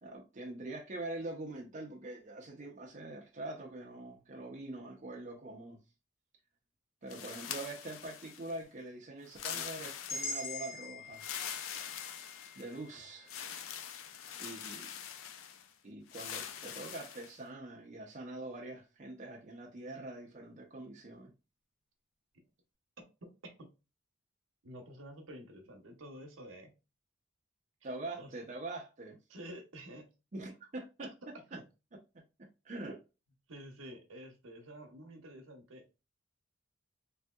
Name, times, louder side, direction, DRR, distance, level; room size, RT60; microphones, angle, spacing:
voice 1, 0.0-5.8 7.0-11.4 12.6-13.4 14.4-14.9 15.8-21.3 27.8-29.2 30.3-31.1 31.5-31.6 32.1-33.0, right 2 dB, 35° right, 0.6 m, -44 dB
sound 1, 7.1-8.6 9.3-10.6 11.1-12.8 13.3-15.7 16.1-17.4, left 8 dB, 85° left, 0.4 m, -43 dB
sound 2, 10.1-14.1, left 2 dB, 60° left, 1.1 m, -44 dB
voice 2, 24.6-26.7 28.1-28.3 29.3-30.1 31.5-31.6 33.5-36.0, equal, 80° right, 0.8 m, -49 dB
3.3 x 2.7 x 2.3 m
head